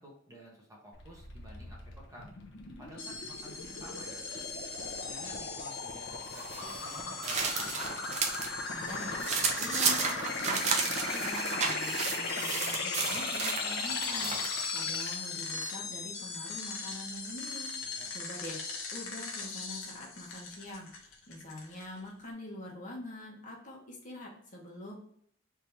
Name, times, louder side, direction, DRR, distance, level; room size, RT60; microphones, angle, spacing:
voice 1, 0.0-2.3 2.8-4.2 4.8-7.9 17.8-18.1, equal, 15° right, -4 dB, 1.1 m, -52 dB
sound 1, 0.9-15.1, left 3 dB, 60° left, 0.8 m, -38 dB
sound 2, 3.0-22.1, left 4 dB, 90° left, 1.0 m, -41 dB
sound 3, 6.3-8.5 8.9-14.6, right 5 dB, 35° right, 0.6 m, -33 dB
voice 2, 8.7-24.9, left 1 dB, 40° left, -2 dB, 1.2 m, -45 dB
3.6 x 2.9 x 4.5 m, 0.65 s
head